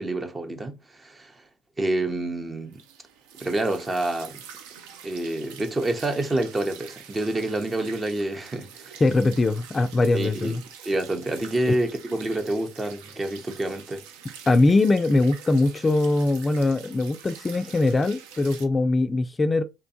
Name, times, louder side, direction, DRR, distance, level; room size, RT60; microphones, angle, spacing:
voice 1, 0.0-1.3 1.8-2.8 3.4-4.4 5.0-9.0 10.1-10.5 10.8-14.0, right 1 dB, 25° right, 0.6 m, -28 dB
sound 1, 2.7-18.7, right 7 dB, 85° right, 0.4 m, -46 dB
voice 2, 9.0-10.6 11.7-11.8 14.5-19.6, left 2 dB, 25° left, 0.3 m, -21 dB
2.7 x 2.2 x 2.6 m
supercardioid pair, 70°, 0 cm